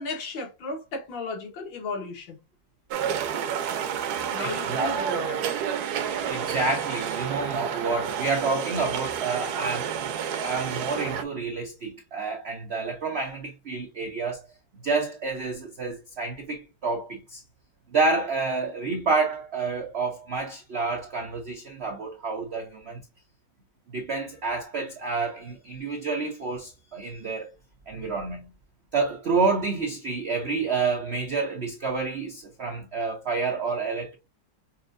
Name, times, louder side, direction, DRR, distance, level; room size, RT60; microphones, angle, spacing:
voice 1, 0.0-2.4 4.3-5.5, left 3 dB, 75° left, 2.0 m, -35 dB
sound 1, 2.9-11.2, right 8 dB, 70° right, 1.0 m, -30 dB
voice 2, 4.4-5.1 6.3-10.1 10.4-14.4 14.8-17.4 17.9-23.0 23.9-27.5 27.9-28.5 28.9-34.2, right 4 dB, 85° right, 0.5 m, -29 dB
5.5 x 2.5 x 2.5 m
omnidirectional pair, 2.1 m